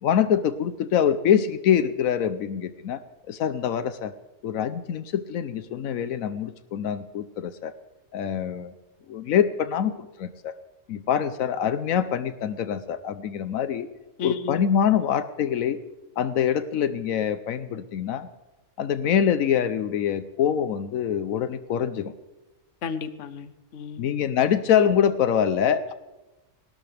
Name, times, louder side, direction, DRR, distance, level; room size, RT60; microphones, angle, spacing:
voice 1, 0.0-4.1 4.4-7.7 8.1-8.7 9.1-9.9 10.2-10.5 10.9-13.9 14.2-15.8 16.2-18.3 18.8-22.1 24.0-25.9, left 8 dB, 85° left, 12 dB, 1.1 m, -24 dB
voice 2, 14.2-14.6 22.8-24.1, left 6 dB, 65° left, 11 dB, 1.1 m, -32 dB
29.0 x 12.5 x 3.4 m, 1.1 s
omnidirectional pair, 1.4 m